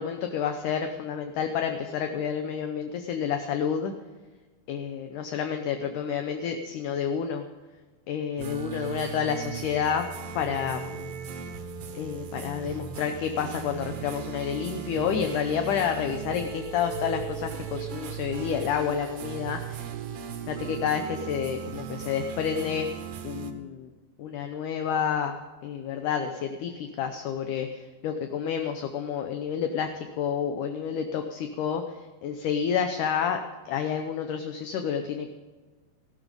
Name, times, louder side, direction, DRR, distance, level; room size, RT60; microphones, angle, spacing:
voice 1, 0.0-3.9 4.7-7.4 8.1-10.1 10.3-11.1 11.9-19.8 20.5-22.9 23.2-23.9 24.2-25.4 25.6-31.8 32.2-33.4 33.7-35.3, left 7 dB, 70° left, 6 dB, 2.1 m, -29 dB
sound 1, 8.4-23.5, right 8 dB, 75° right, 1.3 m, -37 dB
15.0 x 13.0 x 5.3 m, 1.3 s
omnidirectional pair, 4.3 m